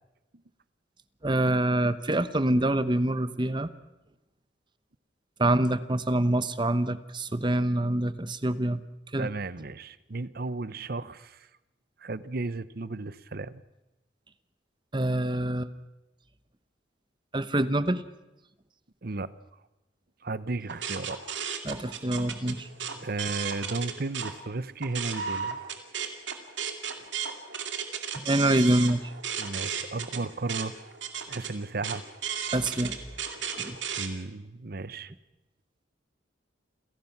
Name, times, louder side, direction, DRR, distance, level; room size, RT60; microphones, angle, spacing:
voice 1, 1.2-3.7 5.4-8.8 9.1-9.3 14.9-15.7 17.3-18.0 21.6-22.7 28.1-29.0 32.5-33.0 33.6-33.8, right 1 dB, 25° right, 13 dB, 1.0 m, -25 dB
voice 2, 9.2-11.4 12.0-13.6 19.0-19.3 20.2-21.2 23.0-25.6 29.4-30.7 31.3-32.0 34.0-35.1, right 3 dB, 55° right, 16 dB, 0.9 m, -34 dB
sound 1, 20.7-24.3 24.7-34.1, right 7 dB, 80° right, 2.4 m, -35 dB
29.0 x 17.0 x 6.0 m, 1.0 s
head